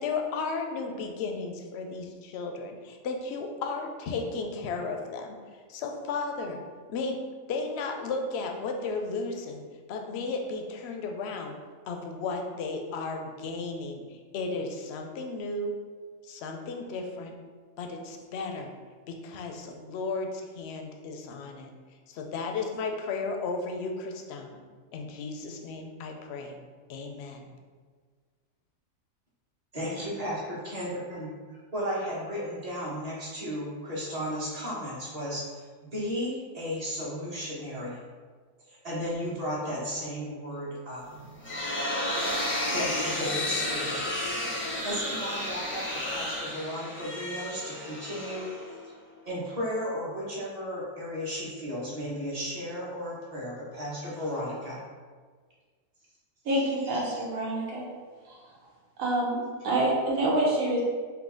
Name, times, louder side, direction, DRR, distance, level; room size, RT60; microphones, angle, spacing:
voice 1, 0.0-6.6 6.9-7.2 7.5-9.6 9.9-11.6 11.9-15.7 16.2-17.3 17.8-18.7 19.1-21.7 22.1-24.6 24.9-26.5 26.9-27.5, left 3 dB, 65° left, 3 dB, 0.7 m, -34 dB
voice 2, 29.7-35.4 35.8-38.0 38.7-41.0 42.7-44.2 44.8-48.5 49.2-54.8, equal, 30° right, -6 dB, 1.1 m, -34 dB
sound 1, 41.1-49.0, left 1 dB, 20° left, 0.3 m, -32 dB
voice 3, 56.4-57.8 58.2-58.4 59.0-59.4 59.6-60.8, right 1 dB, 80° right, -5 dB, 1.4 m, -26 dB
3.8 x 2.8 x 3.8 m, 1.5 s
omnidirectional pair, 1.4 m